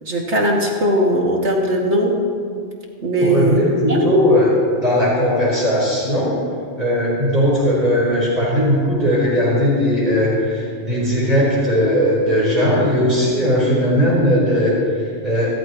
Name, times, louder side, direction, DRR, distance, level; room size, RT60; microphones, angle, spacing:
voice 1, 0.0-2.2 3.0-3.6 3.9-4.1, equal, 80° right, -1 dB, 2.7 m, -18 dB
voice 2, 3.2-4.5 4.8-6.4 6.8-15.5, equal, 40° right, -8 dB, 4.5 m, -18 dB
26.5 x 14.0 x 3.1 m, 2.2 s
omnidirectional pair, 1.1 m